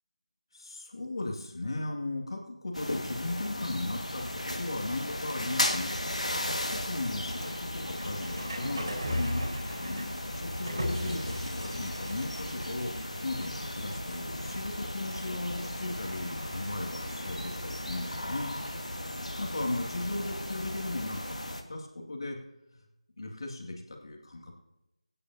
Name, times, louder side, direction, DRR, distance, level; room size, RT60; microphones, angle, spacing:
voice 1, 0.5-5.9 6.7-18.5 19.2-22.4 22.7-22.8 23.2-24.5, left 2 dB, 50° left, 0 dB, 2.1 m, -37 dB
sound 1, 2.7-21.6, left 1 dB, 80° left, 1.8 m, -36 dB
sound 2, 3.9-21.0, equal, 35° right, 4.1 m, -42 dB
Wind instrument woodwind instrument, 15.5-19.9, right 6 dB, 10° right, 0.4 m, -55 dB
21.5 x 9.8 x 2.8 m, 0.96 s
figure-of-eight pair, 165°, 4 cm